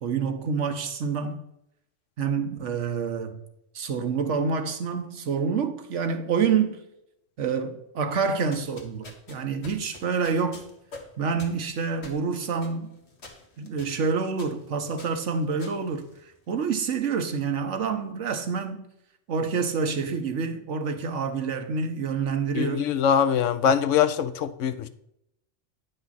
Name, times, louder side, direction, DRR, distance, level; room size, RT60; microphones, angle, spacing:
voice 1, 0.0-1.4 2.2-3.4 3.7-6.8 7.4-10.6 11.2-12.9 13.6-16.1 16.5-18.8 19.3-22.9, right 5 dB, 75° right, 1.3 m, -27 dB
sound 1, 8.3-16.7, left 3 dB, 60° left, 1.7 m, -47 dB
voice 2, 22.5-24.9, left 8 dB, 85° left, 1.0 m, -23 dB
9.2 x 5.5 x 4.1 m
omnidirectional pair, 1.2 m